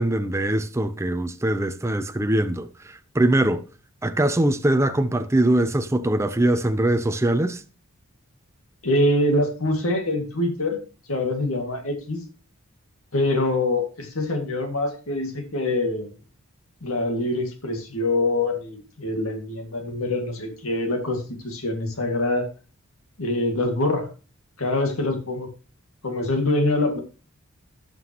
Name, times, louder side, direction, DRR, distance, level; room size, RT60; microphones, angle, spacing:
voice 1, 0.0-3.6 4.0-7.6, right 1 dB, 15° right, 0.6 m, -22 dB
voice 2, 8.8-10.8 11.1-12.2 13.1-16.1 16.8-22.5 23.2-24.1 24.6-25.5 26.0-27.0, left 2 dB, 80° left, 2.1 m, -24 dB
16.5 x 5.8 x 3.0 m
head